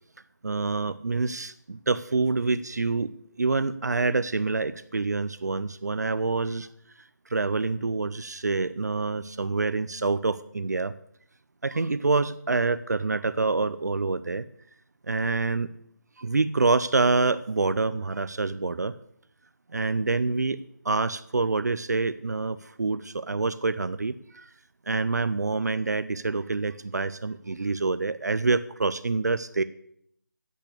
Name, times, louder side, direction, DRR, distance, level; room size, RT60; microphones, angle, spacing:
voice 1, 0.4-3.1 3.4-6.7 7.3-10.9 11.6-14.4 15.1-15.7 16.2-18.9 19.7-20.6 20.8-24.5 24.9-29.6, right 3 dB, 60° right, 13 dB, 0.5 m, -26 dB
8.6 x 8.5 x 6.7 m, 0.70 s
figure-of-eight pair, 180°, 10 cm